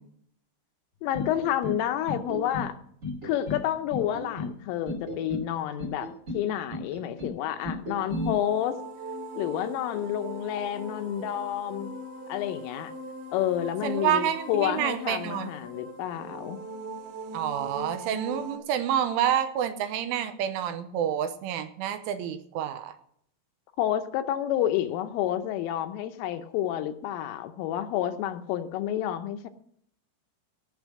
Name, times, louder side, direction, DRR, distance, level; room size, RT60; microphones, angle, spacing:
voice 1, 1.0-2.8 3.2-8.8 9.4-11.9 12.3-12.9 13.3-16.6 23.8-29.5, left 11 dB, 80° left, 9 dB, 3.2 m, -29 dB
sound 1, 1.1-1.8 2.1-2.7 3.0-3.6 3.9-4.5 4.9-5.5 5.8-6.4 6.7-7.3 7.6-8.3, left 2 dB, 40° right, 1.0 m, -33 dB
sound 2, 8.0-18.6, right 2 dB, 60° right, 3.7 m, -40 dB
voice 2, 13.8-15.6 17.3-23.0, right 10 dB, 80° right, 9 dB, 3.1 m, -28 dB
18.0 x 6.1 x 6.2 m, 0.66 s
omnidirectional pair, 6.0 m